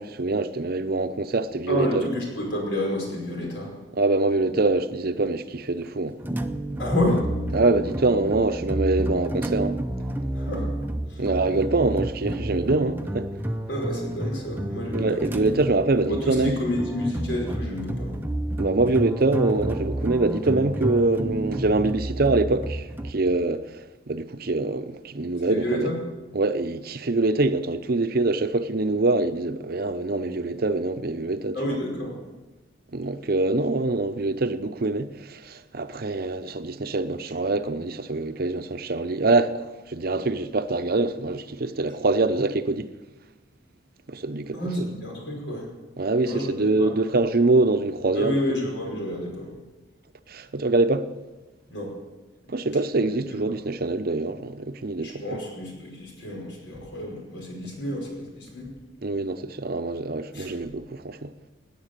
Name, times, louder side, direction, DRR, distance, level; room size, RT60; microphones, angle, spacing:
voice 1, 0.0-2.0 3.9-6.2 7.5-9.8 11.2-13.3 14.9-16.5 18.6-25.9 26.3-31.6 32.9-42.9 44.1-44.9 46.0-48.4 50.3-51.1 52.5-55.4 59.0-61.3, right 2 dB, 55° right, 0.8 m, -24 dB
voice 2, 1.7-3.7 6.8-7.2 10.3-10.7 11.1-11.2 13.7-15.5 16.1-18.2 25.5-26.0 31.5-32.2 44.5-45.7 46.2-46.9 48.1-49.5 51.7-51.9 53.0-53.5 55.0-58.7 60.3-60.5, left 1 dB, 80° left, 5.2 m, -29 dB
sound 1, 6.2-23.1, right 1 dB, 10° right, 0.6 m, -30 dB
17.5 x 10.0 x 6.7 m
head